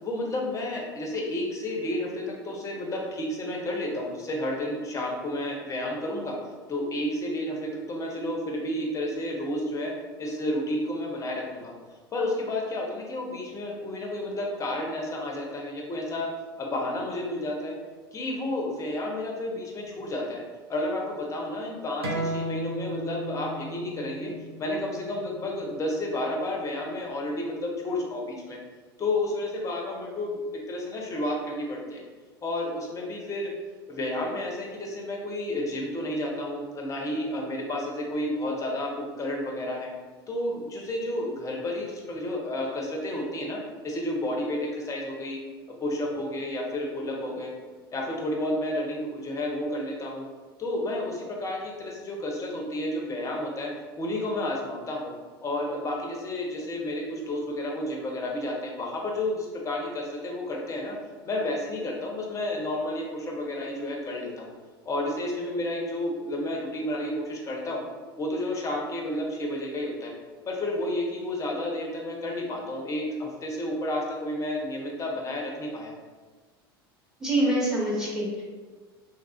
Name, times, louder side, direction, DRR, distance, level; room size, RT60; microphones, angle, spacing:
voice 1, 0.0-6.4 6.7-9.9 10.2-11.7 12.1-16.3 16.6-17.7 18.1-20.4 20.7-24.3 24.6-28.6 29.0-32.0 32.4-33.5 33.9-39.9 40.3-45.4 45.8-47.5 47.9-50.2 50.6-53.7 54.0-55.1 55.4-60.9 61.2-64.5 64.8-67.8 68.2-70.1 70.5-75.9, left 1 dB, 25° left, 0 dB, 0.7 m, -31 dB
sound 1, 22.0-27.2, right 1 dB, 85° right, 0.6 m, -36 dB
voice 2, 77.2-78.4, right 1 dB, 5° right, -5 dB, 1.0 m, -25 dB
3.3 x 2.4 x 2.4 m, 1.4 s
figure-of-eight pair, 75°, 13 cm